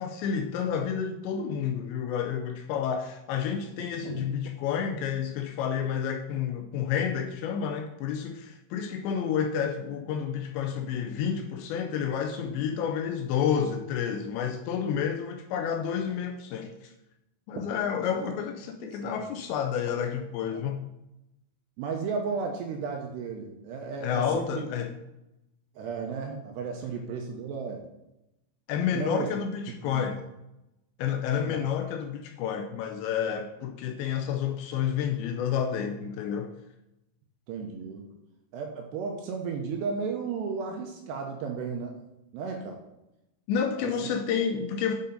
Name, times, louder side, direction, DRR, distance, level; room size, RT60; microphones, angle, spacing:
voice 1, 0.0-16.9 17.5-20.8 24.0-24.9 28.7-30.2 31.0-36.5 43.5-45.0, left 7 dB, 85° left, 5 dB, 2.6 m, -30 dB
voice 2, 21.8-24.7 25.8-27.8 28.9-29.3 29.9-30.0 31.5-31.6 37.5-38.1 38.5-42.0 42.3-42.8 43.8-43.9, right 5 dB, 80° right, 3 dB, 2.6 m, -34 dB
9.1 x 5.3 x 5.2 m, 0.91 s
omnidirectional pair, 5.5 m